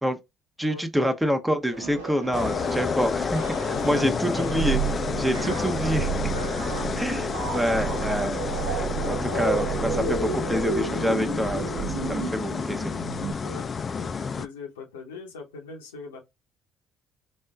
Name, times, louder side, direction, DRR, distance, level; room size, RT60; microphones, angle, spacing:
voice 1, 0.6-6.1 7.0-8.4 9.1-12.9, equal, 10° right, 0.6 m, -27 dB
sound 1, 1.7-13.3, right 3 dB, 90° right, 0.9 m, -33 dB
sound 2, 2.3-14.5, left 5 dB, 40° left, 0.3 m, -30 dB
voice 2, 3.7-4.1 5.3-7.1 8.3-8.7 9.3-9.5 13.4-16.2, left 4 dB, 85° left, 0.8 m, -41 dB
Purr, 4.3-12.4, right 14 dB, 75° right, 0.4 m, -34 dB
4.2 x 2.2 x 2.2 m
hypercardioid pair, 55°, 0 cm